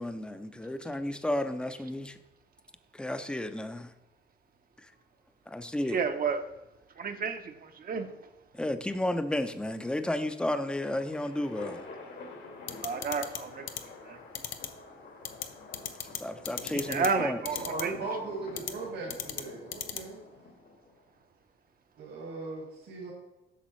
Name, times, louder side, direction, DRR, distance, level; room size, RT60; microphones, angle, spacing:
voice 1, 0.0-2.2 2.9-3.9 4.8-4.9 5.5-6.0 8.5-11.8 16.0-17.4, left 1 dB, 5° left, 0.5 m, -32 dB
voice 2, 5.9-6.4 7.0-8.1 12.8-13.7 14.0-14.2 16.7-17.9, right 5 dB, 45° right, 0.8 m, -31 dB
sound 1, 10.5-21.0, left 3 dB, 65° left, 1.7 m, -47 dB
sound 2, 12.7-13.4 13.7-13.8 14.3-14.7 15.2-15.4 15.7-16.2 16.4-17.1 17.4-17.8 18.6-18.7 19.1-19.4 19.7-20.0, left 11 dB, 85° left, 0.6 m, -34 dB
voice 3, 17.6-20.2 22.0-23.1, right 3 dB, 75° right, 2.1 m, -38 dB
8.3 x 6.0 x 3.1 m
cardioid pair, 90°, 20 cm